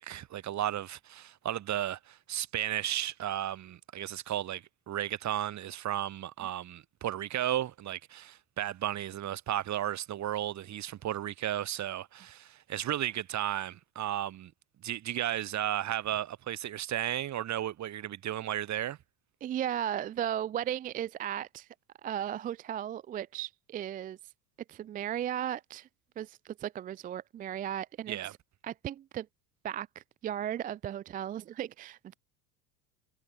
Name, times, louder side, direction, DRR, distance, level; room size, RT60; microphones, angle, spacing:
voice 1, 0.0-14.5 14.8-19.0 28.1-28.3, right 12 dB, 35° right, 1.2 m, -34 dB
voice 2, 19.4-21.7 22.0-24.2 24.7-25.9 26.2-28.2 28.6-29.3 29.6-32.2, right 10 dB, 20° right, 0.3 m, -36 dB
hypercardioid pair, 70°, 48 cm